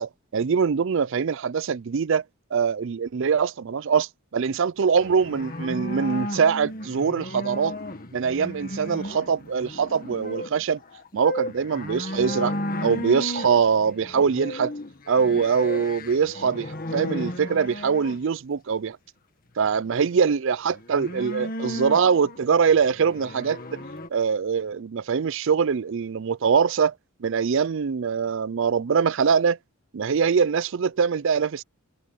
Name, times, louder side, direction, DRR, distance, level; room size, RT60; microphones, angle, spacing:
voice 1, 0.0-2.2 2.5-7.8 8.1-10.8 11.1-12.5 12.8-14.7 15.1-19.0 19.6-23.8 24.1-26.9 27.2-29.6 29.9-31.6, right 6 dB, 55° right, 0.4 m, -23 dB
sound 1, 5.0-18.2 20.7-24.1, left 1 dB, 40° left, 1.8 m, -34 dB
head